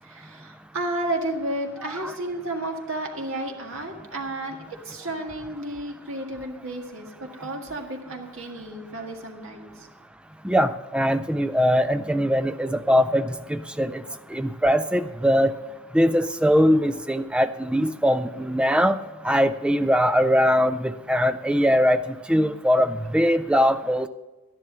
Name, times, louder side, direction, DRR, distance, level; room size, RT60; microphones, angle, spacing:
voice 1, 0.0-4.6 4.8-9.9, right 1 dB, 70° right, 2 dB, 1.8 m, -32 dB
voice 2, 10.4-14.0 14.3-15.5 15.9-19.0 19.2-22.0 22.3-24.1, equal, 5° right, 11 dB, 0.3 m, -21 dB
12.5 x 11.0 x 5.5 m, 1.1 s
head